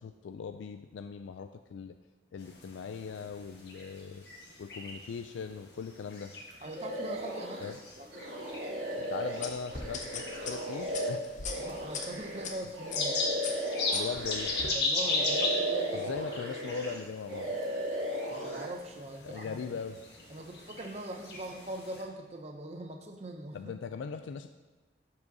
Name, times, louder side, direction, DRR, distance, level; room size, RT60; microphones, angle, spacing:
voice 1, 0.0-2.0 2.3-4.2 4.6-6.3 7.6-7.7 9.1-11.3 13.9-14.5 15.9-17.5 19.2-20.0 23.5-24.5, left 6 dB, 90° left, 8 dB, 0.3 m, -39 dB
sound 1, 2.4-22.0, left 3 dB, 65° left, 1.4 m, -38 dB
voice 2, 6.6-8.1 11.6-13.2 14.7-16.2 18.3-19.8 20.3-23.8, right 1 dB, 35° right, 3 dB, 0.6 m, -42 dB
sound 2, 6.7-7.7 8.1-14.7 15.0-17.0 17.2-18.7, right 1 dB, 65° right, 1.9 m, -36 dB
sound 3, 9.4-12.5 12.9-13.1 13.4-14.7, left 5 dB, 40° left, 0.7 m, -39 dB
12.0 x 4.8 x 2.8 m, 1.3 s
head